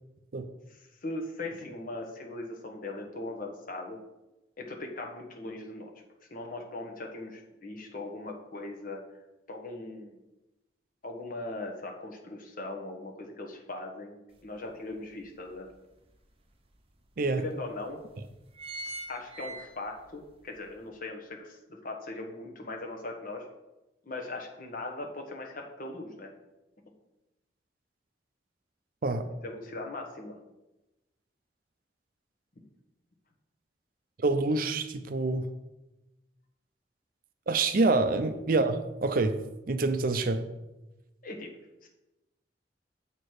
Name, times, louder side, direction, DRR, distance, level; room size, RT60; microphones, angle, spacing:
voice 1, 1.0-4.0 4.6-5.9 6.3-9.0 9.5-10.1 11.0-15.7 17.4-18.0 19.1-23.5 24.1-26.3 29.4-30.4 41.2-41.5 41.8-41.9, left 2 dB, 50° left, 1 dB, 1.3 m, -39 dB
sound 1, 14.3-14.4 14.9-16.1 16.7-16.8 17.0-17.1 17.8-18.0 18.3-20.1 20.5-20.6, right 2 dB, 35° right, 0.9 m, -41 dB
voice 2, 34.2-35.5 37.5-39.4 39.7-40.5, right 3 dB, 55° right, 9 dB, 0.5 m, -26 dB
7.6 x 4.5 x 4.9 m, 0.99 s
head